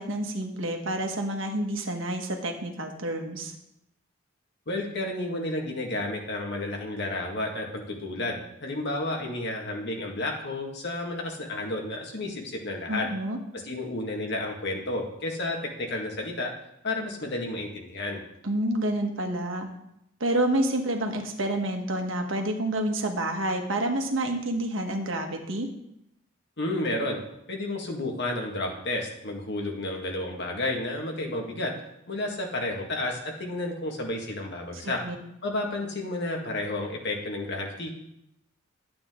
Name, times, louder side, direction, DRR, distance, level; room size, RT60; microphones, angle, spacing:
voice 1, 0.0-3.5 12.9-13.4 18.4-19.7 20.2-25.7 34.8-35.1, right 1 dB, 70° right, 3 dB, 1.5 m, -28 dB
voice 2, 4.7-13.1 13.6-16.5 16.8-18.2 26.6-27.2 27.5-31.7 32.1-35.0 35.4-38.0, left 2 dB, 60° left, 1 dB, 1.9 m, -31 dB
11.5 x 8.6 x 3.8 m, 0.81 s
head